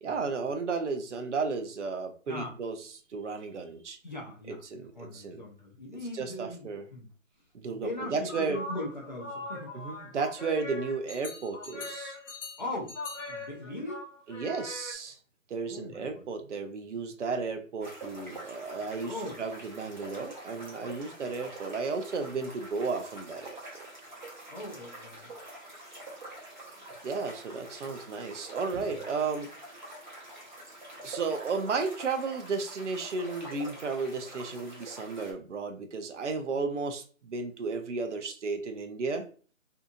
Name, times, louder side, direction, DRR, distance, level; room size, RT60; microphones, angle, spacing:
voice 1, 0.0-2.8 3.1-4.0 4.5-5.4 6.1-6.9 7.5-8.6 9.7-12.2 14.3-15.2 15.5-23.9 27.0-29.5 31.0-39.3, right 4 dB, 60° right, 6 dB, 0.6 m, -33 dB
voice 2, 4.0-7.1 7.7-9.7 12.6-12.9 13.3-14.0 15.6-16.2 19.0-19.4 24.5-25.3 28.8-28.9, left 1 dB, 35° left, -2 dB, 0.7 m, -39 dB
sound 1, 8.3-14.9, left 2 dB, 70° left, 0.8 m, -41 dB
sound 2, 17.8-35.3, right 1 dB, 35° right, 0.8 m, -46 dB
2.7 x 2.4 x 2.6 m, 0.40 s
hypercardioid pair, 175°, 40 cm